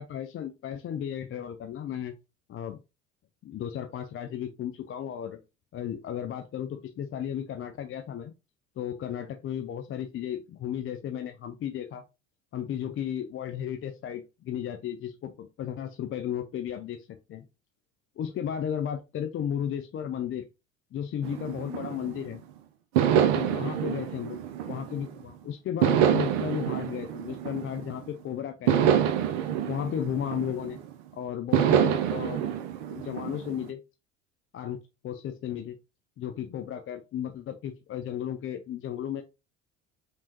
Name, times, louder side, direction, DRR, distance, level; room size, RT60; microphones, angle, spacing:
voice 1, 0.0-2.1 2.5-2.8 3.4-5.4 5.7-8.3 8.8-12.0 12.5-17.4 18.2-20.5 20.9-22.4 23.3-24.4 24.7-28.9 29.7-30.8 31.1-32.5 32.9-33.8 34.5-35.8 36.2-39.2, left 9 dB, 35° left, 7 dB, 0.6 m, -34 dB
sound 1, 21.2-22.4 22.9-25.2 25.8-28.1 28.7-30.9 31.5-33.7, right 9 dB, 65° right, 0.8 m, -26 dB
5.1 x 3.5 x 2.9 m, 0.27 s
hypercardioid pair, 70°, 37 cm